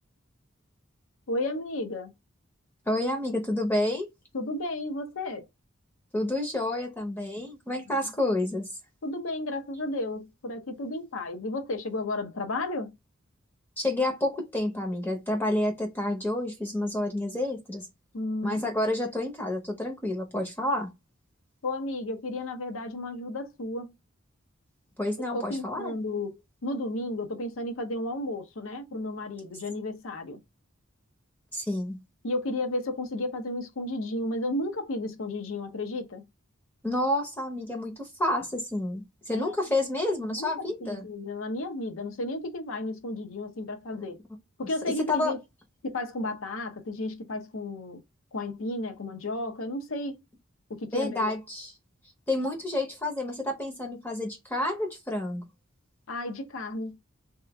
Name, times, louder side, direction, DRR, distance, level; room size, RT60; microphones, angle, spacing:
voice 1, 1.3-2.1 4.3-5.5 7.9-8.1 9.0-12.9 18.1-18.7 21.6-23.9 25.3-26.3 26.6-30.4 32.2-36.2 39.3-39.5 40.2-44.2 44.6-45.4 45.8-48.0 48.3-50.2 50.7-51.3 56.1-57.0, left 2 dB, 80° left, 0.7 m, -33 dB
voice 2, 2.9-4.1 6.1-8.7 13.8-17.9 18.4-20.9 25.0-26.0 31.5-32.0 36.8-41.0 43.9-44.0 44.9-45.3 50.9-51.7 52.3-55.4, left 1 dB, 10° left, 0.6 m, -29 dB
2.9 x 2.3 x 3.3 m
head